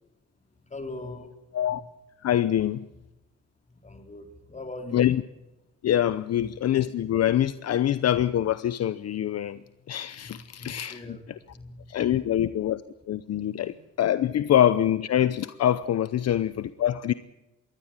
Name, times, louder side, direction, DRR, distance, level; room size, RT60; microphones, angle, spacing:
voice 1, 0.6-1.8 3.7-5.1 10.2-12.0 12.3-12.4 13.6-13.7, left 2 dB, 25° left, 4.0 m, -42 dB
voice 2, 2.2-2.9 4.9-5.2 5.8-9.6 9.9-11.4 11.9-12.8 13.1-17.1, left 11 dB, 55° left, 0.8 m, -25 dB
22.0 x 17.0 x 8.9 m
cardioid pair, 90°, 30 cm